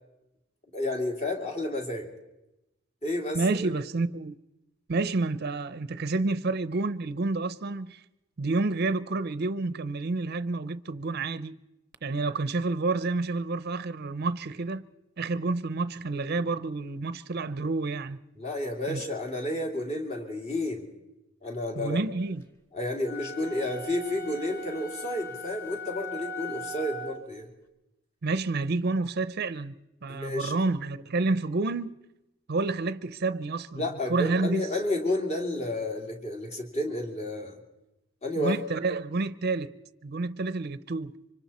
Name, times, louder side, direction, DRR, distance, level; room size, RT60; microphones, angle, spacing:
voice 1, 0.7-2.1 3.0-3.7 18.4-20.9 21.4-22.0 22.7-27.5 30.1-30.5 33.8-37.6 38.2-38.6, left 1 dB, 35° left, 2.7 m, -31 dB
voice 2, 3.3-4.4 4.9-8.0 8.4-11.6 12.0-14.8 15.2-18.2 18.9-19.0 21.8-22.4 28.2-29.8 30.0-31.9 32.5-34.7 38.4-39.7 40.0-41.1, right 3 dB, 55° right, 0.6 m, -29 dB
sound 1, 23.0-27.3, left 1 dB, 10° left, 1.6 m, -39 dB
26.0 x 25.0 x 4.2 m
head